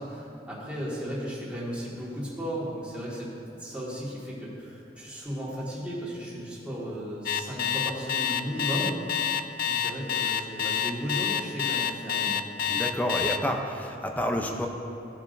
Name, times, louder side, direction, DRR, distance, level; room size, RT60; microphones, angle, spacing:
voice 1, 0.0-3.3 3.6-8.9 9.7-12.4, equal, 5° right, -7 dB, 1.9 m, -35 dB
Alarm, 7.3-13.4, left 8 dB, 50° left, 0.3 m, -27 dB
voice 2, 12.7-14.7, equal, 10° left, 2 dB, 0.6 m, -29 dB
16.0 x 6.0 x 2.6 m, 2.9 s
head